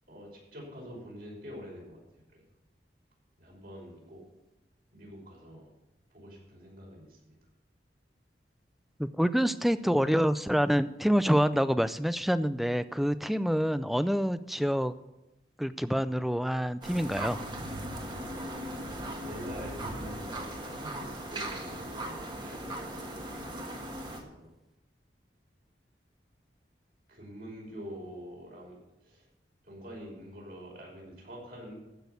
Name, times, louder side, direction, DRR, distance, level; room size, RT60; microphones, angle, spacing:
voice 1, 0.1-2.4 3.4-4.2 4.9-5.7 6.1-7.4 9.9-10.2 19.1-23.1 24.0-24.6 27.1-29.3 29.6-31.8, equal, 55° right, -3 dB, 5.8 m, -46 dB
voice 2, 9.0-14.9 15.6-17.4, equal, ahead, 13 dB, 0.4 m, -27 dB
sound 1, 16.8-24.2, right 1 dB, 25° right, 1.6 m, -38 dB
15.0 x 6.3 x 7.0 m, 0.95 s
head